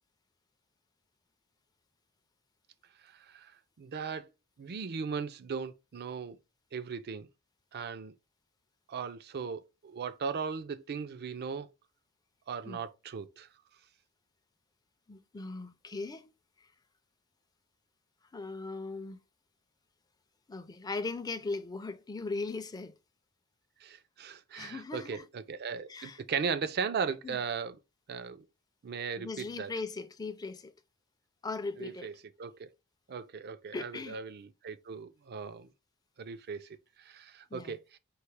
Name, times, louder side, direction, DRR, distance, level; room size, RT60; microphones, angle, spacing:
voice 1, 3.0-3.5 3.8-4.3 4.6-6.4 6.7-7.3 7.7-8.1 8.9-11.7 12.5-13.5 23.8-27.8 28.1-28.4 28.8-29.7 31.8-32.7 33.1-35.7 36.2-36.7 37.0-38.0, right 6 dB, 45° right, 0.4 m, -37 dB
voice 2, 15.1-16.3 18.3-19.2 20.5-22.9 24.5-25.2 25.9-26.2 27.2-27.4 29.2-30.7 31.4-32.1 33.7-34.2 37.5-37.8, left 3 dB, 20° left, 0.4 m, -39 dB
4.7 x 2.7 x 3.2 m
head